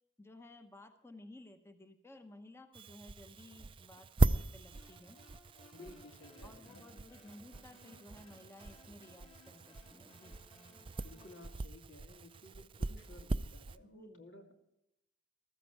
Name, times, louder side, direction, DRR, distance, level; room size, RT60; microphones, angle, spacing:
voice 1, 0.2-5.2 6.4-10.4 13.8-14.3, left 1 dB, 15° left, 8 dB, 0.8 m, -56 dB
sound 1, 2.7-13.8, right 2 dB, 25° right, 0.4 m, -38 dB
sound 2, 4.7-11.5, left 2 dB, 30° left, 2.4 m, -61 dB
voice 2, 5.7-6.8 11.0-14.5, left 1 dB, 85° left, 4 dB, 2.4 m, -55 dB
15.0 x 13.5 x 4.6 m, 0.85 s
head